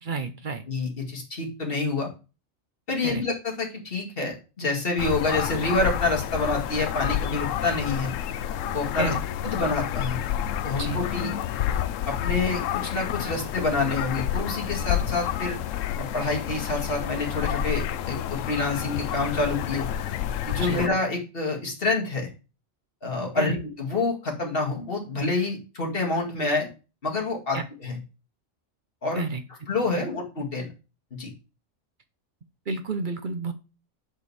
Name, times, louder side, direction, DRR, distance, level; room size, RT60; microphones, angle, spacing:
voice 1, 0.0-0.6 3.0-3.2 9.0-9.2 10.8-11.0 20.6-20.9 23.4-23.6 27.5-27.6 29.1-29.4 29.9-30.1 32.7-33.5, right 4 dB, 45° right, 9 dB, 0.8 m, -30 dB
voice 2, 0.7-2.1 2.9-8.1 8.7-9.1 9.4-10.2 10.6-11.3 12.1-15.6 16.0-19.9 20.5-22.3 23.0-26.7 27.0-28.0 29.0-29.2 29.7-30.7 31.2-31.3, left 3 dB, 45° left, 0 dB, 2.3 m, -27 dB
sound 1, 5.0-20.9, left 10 dB, 80° left, 0.9 m, -29 dB
8.0 x 5.3 x 4.1 m, 0.32 s
omnidirectional pair, 1.3 m